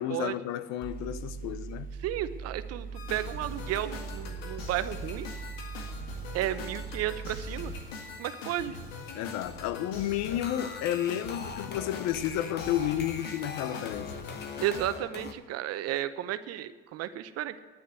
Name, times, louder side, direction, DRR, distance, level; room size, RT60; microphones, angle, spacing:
voice 1, 0.0-1.9 9.1-14.1, left 11 dB, 65° left, 0.9 m, -31 dB
Mechanical fan, 0.8-7.8, right 5 dB, 30° right, 1.1 m, -40 dB
voice 2, 2.0-5.3 6.3-7.7 8.2-8.8 14.6-17.6, right 12 dB, 55° right, 0.9 m, -33 dB
sound 1, 2.9-14.9, left 3 dB, 90° left, 1.9 m, -42 dB
sound 2, 10.3-15.3, left 5 dB, 35° left, 1.3 m, -41 dB
10.0 x 9.4 x 7.8 m
hypercardioid pair, 80°, 29 cm